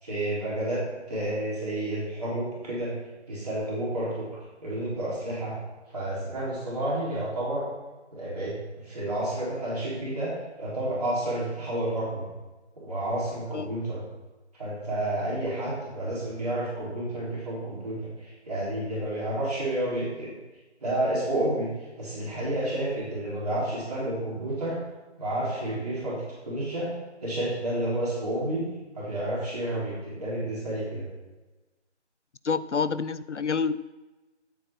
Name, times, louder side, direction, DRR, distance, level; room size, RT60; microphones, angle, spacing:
voice 1, 0.0-0.8 1.1-2.9 3.3-4.2 4.6-5.6 5.9-7.6 8.1-8.5 8.8-10.3 10.6-12.3 12.8-14.0 14.6-20.3 20.8-21.7 22.0-24.8 25.2-26.9 27.2-28.7 28.9-31.1, right 1 dB, 35° right, -7 dB, 3.6 m, -30 dB
voice 2, 32.4-33.8, left 5 dB, 80° left, 15 dB, 0.6 m, -27 dB
12.5 x 8.2 x 4.3 m, 1.2 s
figure-of-eight pair, 160°, 35 cm